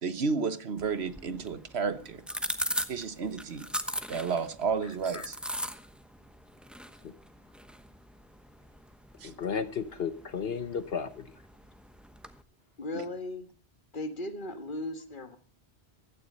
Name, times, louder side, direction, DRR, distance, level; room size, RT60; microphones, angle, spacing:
voice 1, 0.0-2.2 2.9-3.7 4.1-5.3 9.2-9.3, right 5 dB, 80° right, 12 dB, 1.4 m, -31 dB
sound 1, 0.8-12.4, equal, ahead, 1.0 m, -40 dB
voice 2, 4.8-5.3 5.6-5.7 12.8-13.5 13.9-15.4, left 2 dB, 50° left, 9 dB, 1.7 m, -38 dB
voice 3, 9.2-11.3, left 6 dB, 70° left, 11 dB, 1.2 m, -33 dB
16.0 x 12.0 x 5.4 m, 0.38 s
omnidirectional pair, 1.1 m